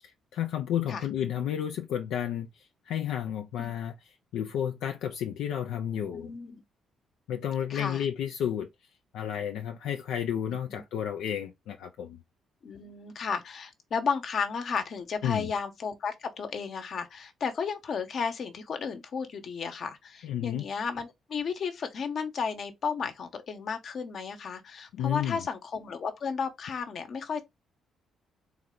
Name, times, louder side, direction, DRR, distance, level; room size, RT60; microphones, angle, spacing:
voice 1, 0.0-6.3 7.3-8.7 9.1-12.2 15.2-15.5 20.2-20.6 24.9-25.4, left 9 dB, 85° left, 0.5 m, -32 dB
voice 2, 5.9-6.6 7.7-8.0 10.5-10.8 12.6-27.4, left 6 dB, 60° left, 1.1 m, -33 dB
4.0 x 3.3 x 3.8 m
cardioid pair, 90°, 0 cm